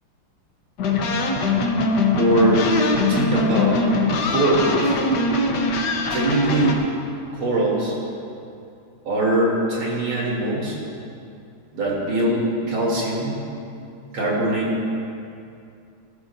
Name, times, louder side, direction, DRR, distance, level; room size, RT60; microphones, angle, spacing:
sound 1, 0.8-6.7, left 2 dB, 60° left, 1.5 m, -21 dB
voice 1, 2.1-2.6 3.1-3.8 4.3-5.0 6.1-6.7 7.3-8.0 9.1-10.8 11.7-13.4 14.1-14.8, right 1 dB, 80° right, -5 dB, 3.9 m, -22 dB
20.0 x 12.5 x 2.7 m, 2.6 s
omnidirectional pair, 2.3 m